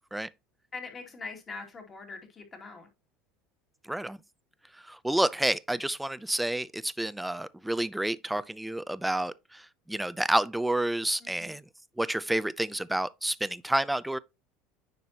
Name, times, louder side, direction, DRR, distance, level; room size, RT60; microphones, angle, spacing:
voice 1, 0.7-2.9 11.2-11.6, left 4 dB, 25° left, 2.4 m, -42 dB
voice 2, 4.9-9.6 9.9-11.6 12.0-14.2, right 1 dB, 5° right, 0.4 m, -29 dB
9.3 x 5.4 x 2.8 m
supercardioid pair, 125°, 0 cm